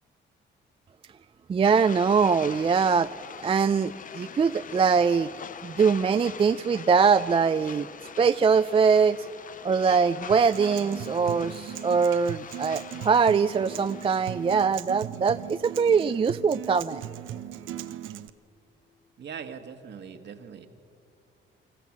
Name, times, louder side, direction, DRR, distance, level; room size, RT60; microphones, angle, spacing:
voice 1, 1.5-3.1 3.4-5.3 5.6-7.9 8.2-9.3 9.6-17.0, right 5 dB, 30° right, 12 dB, 0.4 m, -22 dB
sound 1, 1.6-14.7, left 7 dB, 40° left, 0.7 m, -43 dB
Acoustic guitar, 10.3-18.3, right 11 dB, 85° right, 0.8 m, -39 dB
voice 2, 19.2-20.7, right 7 dB, 60° right, 7 dB, 1.6 m, -41 dB
26.0 x 14.0 x 7.3 m, 2.5 s
cardioid pair, 90°, 20 cm